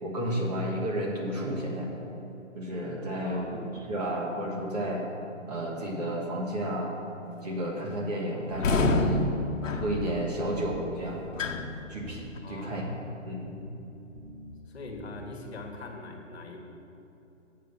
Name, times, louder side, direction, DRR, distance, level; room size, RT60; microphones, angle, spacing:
voice 1, 0.0-1.9 2.5-3.6 3.9-5.0 5.5-6.9 7.4-9.2 9.7-11.2 11.9-12.8 13.2-13.6, right 1 dB, 30° right, -2 dB, 1.5 m, -32 dB
voice 2, 3.2-3.8 10.3-10.6 12.4-13.0 14.7-16.6, left 3 dB, 55° left, 2 dB, 1.5 m, -43 dB
sound 1, 8.5-12.4, left 2 dB, 80° left, 0.9 m, -29 dB
sound 2, 10.6-11.0 11.3-11.7 12.0-12.4 12.7-13.1 13.4-13.8 14.1-14.5 14.9-15.2, right 1 dB, 80° right, 2.3 m, -46 dB
7.5 x 6.6 x 7.0 m, 2.9 s
hypercardioid pair, 165°, 38 cm